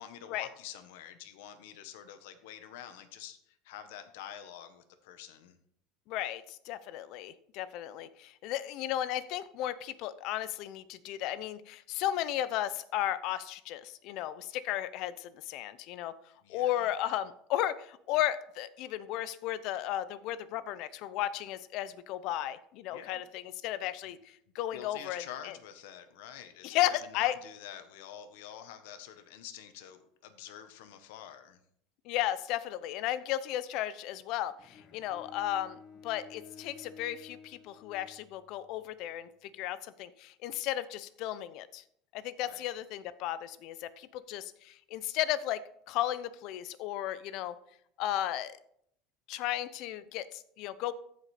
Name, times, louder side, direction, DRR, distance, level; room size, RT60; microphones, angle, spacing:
voice 1, 0.0-5.6 16.4-16.9 22.9-23.2 24.7-31.6 42.4-42.7, left 10 dB, 80° left, 8 dB, 1.1 m, -47 dB
voice 2, 6.1-16.1 16.5-24.2 24.5-25.5 26.6-27.3 32.1-41.8 42.1-47.6 48.0-48.6 49.3-50.9, left 13 dB, 55° left, 15 dB, 0.6 m, -34 dB
Bowed string instrument, 34.6-38.8, left 6 dB, 35° left, 1.3 m, -53 dB
14.5 x 5.1 x 4.3 m, 0.70 s
supercardioid pair, 140°, 0 cm